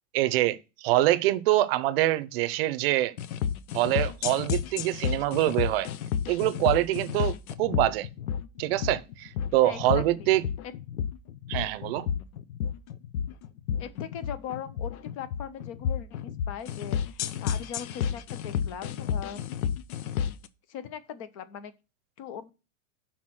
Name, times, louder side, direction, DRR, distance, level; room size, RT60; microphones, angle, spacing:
voice 1, 0.1-3.1 3.7-5.9 6.3-8.1 8.6-10.4 11.5-12.1, right 15 dB, 45° right, 0.6 m, -25 dB
sound 1, 3.2-20.5, left 8 dB, 75° left, 0.8 m, -31 dB
voice 2, 9.6-10.3 10.6-10.7 13.8-19.4 20.2-20.3 20.7-21.7 22.2-22.5, left 8 dB, 25° left, 0.4 m, -40 dB
5.9 x 4.1 x 6.3 m
supercardioid pair, 160°, 43 cm